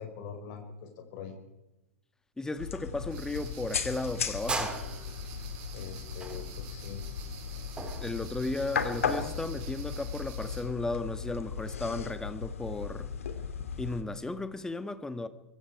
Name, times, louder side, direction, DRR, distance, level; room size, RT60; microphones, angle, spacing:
voice 1, 0.0-1.4 5.7-7.0, left 6 dB, 45° left, 5.0 m, -43 dB
voice 2, 2.4-4.8 8.0-13.1 13.8-15.3, left 2 dB, 10° left, 1.7 m, -35 dB
sound 1, 2.6-14.0, left 6 dB, 70° left, 2.7 m, -36 dB
sound 2, 3.1-10.6, right 7 dB, 45° right, 5.2 m, -48 dB
sound 3, 4.5-9.4, right 3 dB, 10° right, 3.8 m, -39 dB
24.5 x 23.5 x 4.8 m
figure-of-eight pair, 100°, 8 cm